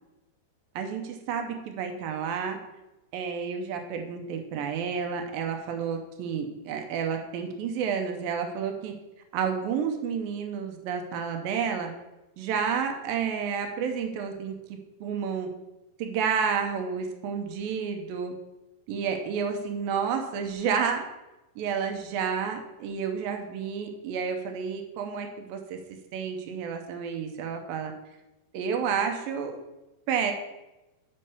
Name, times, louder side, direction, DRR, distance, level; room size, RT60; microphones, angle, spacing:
voice 1, 0.8-2.6 3.1-8.9 9.3-11.9 12.4-14.5 15.0-15.5 16.0-18.3 18.9-21.0 21.6-25.8 26.1-27.9 28.5-29.6 30.1-30.3, right 6 dB, 80° right, 4 dB, 2.1 m, -30 dB
7.0 x 5.4 x 6.8 m, 0.99 s
omnidirectional pair, 5.2 m